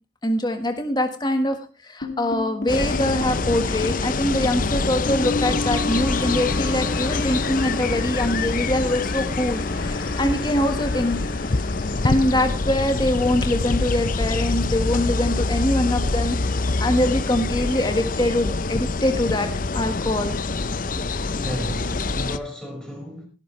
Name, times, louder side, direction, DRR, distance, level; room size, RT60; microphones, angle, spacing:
voice 1, 0.2-1.6 1.8-11.2 12.0-20.4, left 1 dB, 20° left, 1.5 m, -23 dB
sound 1, 2.0-14.2, left 2 dB, 65° left, 2.4 m, -33 dB
sound 2, 2.7-22.4, left 3 dB, 45° left, 0.7 m, -25 dB
voice 2, 21.3-23.3, equal, 5° left, 5.2 m, -33 dB
17.0 x 12.5 x 3.2 m
head